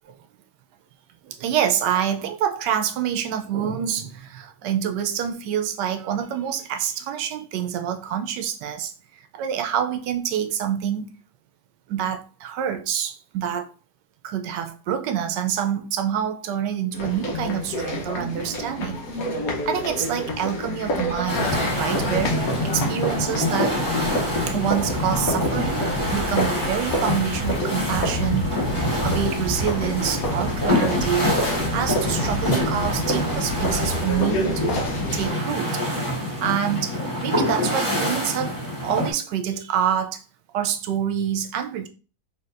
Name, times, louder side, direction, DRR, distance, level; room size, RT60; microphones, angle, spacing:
voice 1, 1.2-11.1 11.9-13.7 14.2-19.0 19.6-23.8 24.5-28.6 29.0-31.3 31.7-34.8 35.1-35.8 36.3-38.5 38.8-40.2 40.5-41.9, right 9 dB, 85° right, 1.2 m, -26 dB
sound 1, 16.9-35.3, left 1 dB, 60° left, 1.2 m, -28 dB
sound 2, 21.3-39.1, left 1 dB, 20° left, 1.8 m, -26 dB
4.2 x 3.4 x 2.5 m
omnidirectional pair, 1.8 m